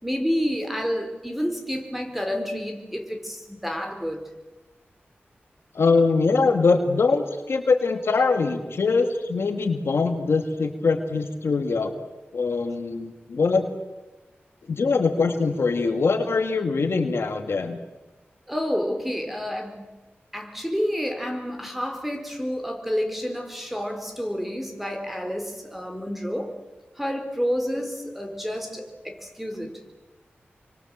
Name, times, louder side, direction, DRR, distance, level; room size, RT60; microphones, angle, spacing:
voice 1, 0.0-4.3 18.5-19.9 20.3-26.5 27.0-29.7, equal, 5° right, 5 dB, 4.1 m, -29 dB
voice 2, 5.7-11.9 12.3-13.6 14.7-17.8, left 4 dB, 80° left, 6 dB, 2.3 m, -22 dB
27.5 x 24.0 x 7.6 m, 1.2 s
wide cardioid pair, 80°, 4 cm